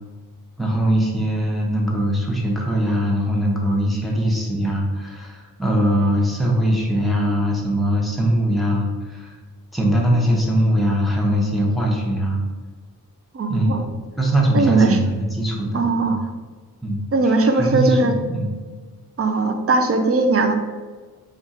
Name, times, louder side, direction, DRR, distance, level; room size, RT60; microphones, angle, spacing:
voice 1, 0.6-9.3 9.7-12.4 13.5-13.7 14.2-16.2 16.8-18.5, equal, ahead, -3 dB, 0.9 m, -21 dB
voice 2, 13.3-13.9 14.5-15.0 15.7-16.2 17.1-18.2 19.2-20.5, right 3 dB, 40° right, 5 dB, 0.5 m, -19 dB
3.5 x 2.5 x 4.1 m, 1.4 s
wide cardioid pair, 70°, 37 cm